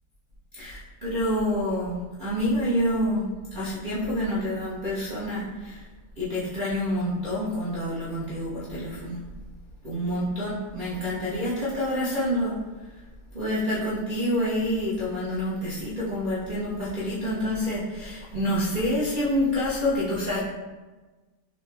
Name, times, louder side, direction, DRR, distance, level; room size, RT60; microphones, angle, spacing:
voice 1, 0.5-5.8 6.2-9.2 9.8-12.5 13.3-20.4, equal, 45° right, -10 dB, 0.6 m, -27 dB
4.1 x 2.8 x 3.3 m, 1.3 s
omnidirectional pair, 2.0 m